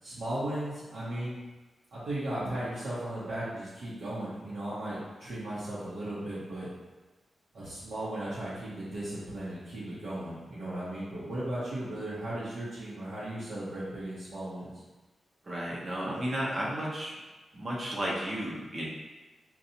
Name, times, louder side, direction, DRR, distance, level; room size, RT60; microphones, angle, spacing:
voice 1, 0.0-1.4 1.9-6.7 7.5-14.7, right 1 dB, 80° right, -10 dB, 0.9 m, -36 dB
voice 2, 15.4-17.1 17.5-18.9, right 1 dB, 35° right, -5 dB, 0.8 m, -33 dB
4.1 x 2.3 x 2.8 m, 1.2 s
wide cardioid pair, 145°, 0 cm